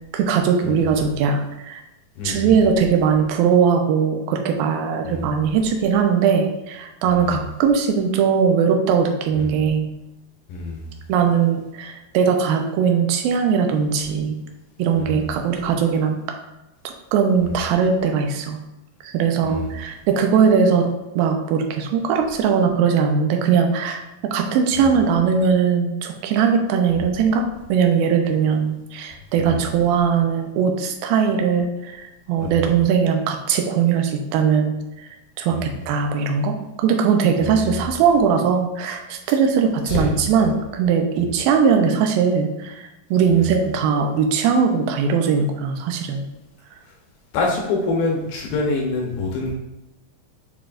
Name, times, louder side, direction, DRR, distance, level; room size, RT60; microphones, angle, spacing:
voice 1, 0.1-1.8 2.2-9.9 11.1-14.3 14.8-16.2 17.1-18.6 19.0-20.9 21.2-27.4 27.7-32.0 32.3-34.7 35.4-42.8 43.1-46.3, right 6 dB, 75° right, 4 dB, 2.4 m, -20 dB
voice 2, 2.2-2.6 5.0-5.3 7.0-7.4 9.3-9.6 10.5-10.9 15.0-15.3 19.4-19.7 24.8-24.9 26.9-27.0 29.4-29.7 32.4-32.6 35.5-35.7 37.4-37.8 39.9-40.1 43.3-43.5 47.3-49.5, left 3 dB, 80° left, -1 dB, 2.6 m, -26 dB
8.2 x 4.5 x 2.5 m, 0.96 s
omnidirectional pair, 4.3 m